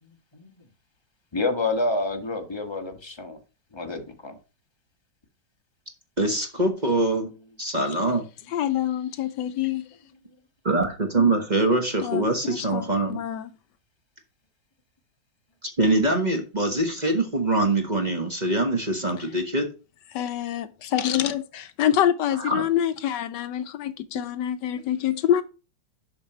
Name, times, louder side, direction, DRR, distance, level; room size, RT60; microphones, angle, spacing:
voice 1, 1.3-3.4 3.7-4.4, left 2 dB, 20° left, 0.9 m, -28 dB
voice 2, 6.2-7.3 7.6-8.2 10.6-13.2 15.6-19.7 22.5-22.6, right 2 dB, 30° right, 1.1 m, -23 dB
voice 3, 8.5-9.9 12.0-13.5 20.1-25.4, left 10 dB, 75° left, 1.2 m, -26 dB
7.5 x 6.0 x 4.3 m
omnidirectional pair, 2.0 m